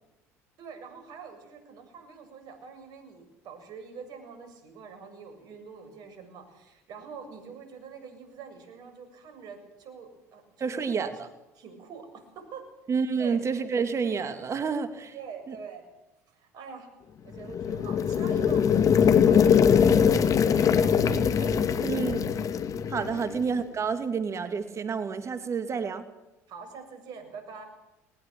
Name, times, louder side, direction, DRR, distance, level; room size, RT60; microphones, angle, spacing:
voice 1, 0.6-11.1 11.6-12.7 13.2-13.4 15.1-15.9 16.3-16.9 17.2-22.2 23.1-23.3 26.5-27.6, right 6 dB, 55° right, 7 dB, 7.3 m, -45 dB
voice 2, 10.6-11.1 12.9-15.1 15.5-15.6 21.8-22.3 22.9-26.0, right 5 dB, 40° right, 10 dB, 2.3 m, -29 dB
sound 1, 17.4-23.4, left 7 dB, 45° left, 2.1 m, -22 dB
21.0 x 20.0 x 7.5 m, 0.93 s
hypercardioid pair, 70°, 8 cm